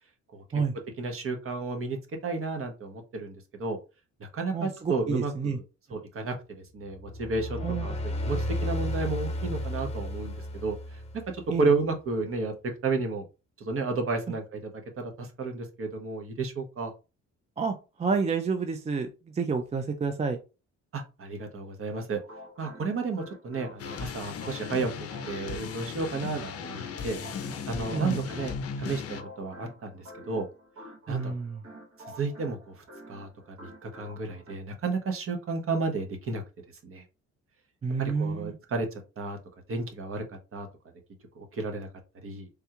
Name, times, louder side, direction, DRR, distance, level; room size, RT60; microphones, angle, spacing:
voice 1, 0.3-0.6 1.0-3.8 4.2-5.6 5.9-7.9 8.2-11.0 11.3-13.3 13.6-14.7 15.0-16.9 20.9-22.2 22.6-27.2 27.7-30.5 31.1-31.3 32.2-32.7 33.1-36.4 36.8-37.0 38.0-39.4 39.7-40.7 41.4-41.9 42.2-42.5, right 3 dB, 45° right, 5 dB, 0.9 m, -32 dB
voice 2, 4.5-5.6 7.6-7.9 11.5-11.7 17.6-20.4 27.9-28.2 31.1-31.6 37.8-38.5, right 5 dB, 20° right, 6 dB, 0.4 m, -29 dB
sound 1, 6.9-11.6, equal, 20° left, 1.0 m, -33 dB
sound 2, 22.2-34.5, equal, 75° right, 1.9 m, -48 dB
sound 3, 23.8-29.2, left 6 dB, 50° left, 0.5 m, -37 dB
3.4 x 2.3 x 2.9 m, 0.30 s
cardioid pair, 90°, 30 cm